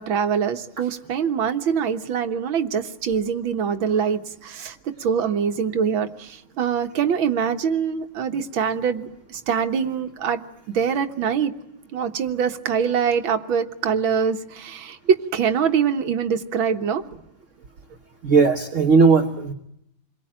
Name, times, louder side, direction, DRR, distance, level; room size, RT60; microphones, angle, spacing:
voice 1, 0.0-10.4 10.7-11.5 11.9-17.0, right 7 dB, 85° right, 7 dB, 2.1 m, -24 dB
voice 2, 18.2-19.5, right 4 dB, 40° right, 4 dB, 1.6 m, -17 dB
27.5 x 22.5 x 8.9 m, 0.78 s
omnidirectional pair, 2.1 m